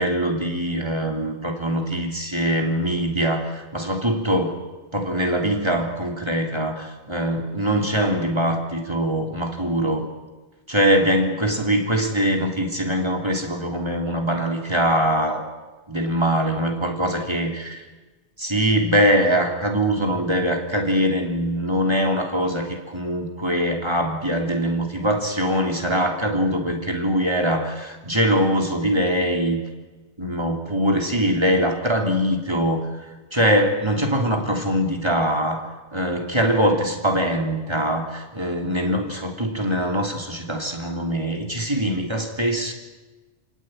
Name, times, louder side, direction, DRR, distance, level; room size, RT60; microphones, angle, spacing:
voice 1, 0.0-4.6 4.9-10.1 10.7-15.4 15.9-17.8 18.4-29.6 30.2-33.1 33.3-42.7, equal, 25° right, 2 dB, 3.5 m, -22 dB
29.0 x 18.0 x 9.4 m, 1.2 s
omnidirectional pair, 1.2 m